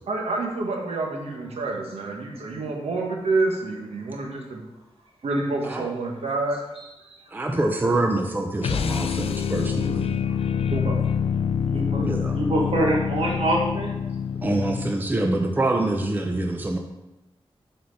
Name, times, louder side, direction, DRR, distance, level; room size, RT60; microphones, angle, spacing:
voice 1, 0.1-4.6 5.2-6.6 10.7-11.0, right 3 dB, 85° right, 0 dB, 1.3 m, -27 dB
voice 2, 7.3-10.1 12.0-12.4 14.4-16.8, right 2 dB, 20° right, 2 dB, 0.6 m, -25 dB
sound 1, 8.6-15.1, left 7 dB, 70° left, 0.4 m, -26 dB
voice 3, 11.7-12.1 12.3-13.9, right 1 dB, 65° right, -2 dB, 1.8 m, -25 dB
6.6 x 4.3 x 5.5 m, 0.98 s
wide cardioid pair, 155°, 10 cm